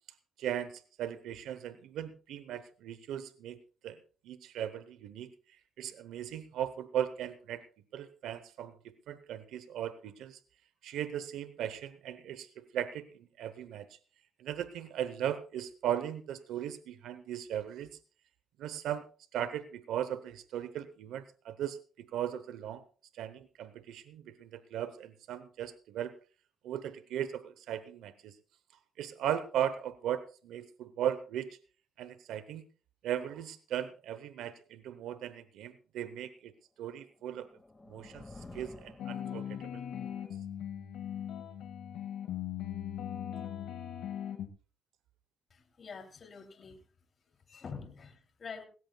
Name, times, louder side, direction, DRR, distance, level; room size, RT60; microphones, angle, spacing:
voice 1, 0.4-4.0 4.2-5.3 5.8-7.6 7.9-10.4 10.8-14.0 14.4-17.9 18.6-19.1 19.3-22.8 23.1-26.1 26.6-28.4 29.0-31.5 32.0-32.6 33.0-36.5 36.8-37.5 37.9-39.8, right 10 dB, 85° right, 13 dB, 0.8 m, -37 dB
sound 1, 37.0-39.9, left 2 dB, 20° left, 1.8 m, -51 dB
sound 2, 39.0-44.5, left 10 dB, 80° left, 1.7 m, -39 dB
voice 2, 45.5-46.8 47.2-48.6, left 5 dB, 45° left, 5 dB, 2.9 m, -46 dB
18.5 x 17.0 x 2.3 m, 0.37 s
cardioid pair, 90°, 0 cm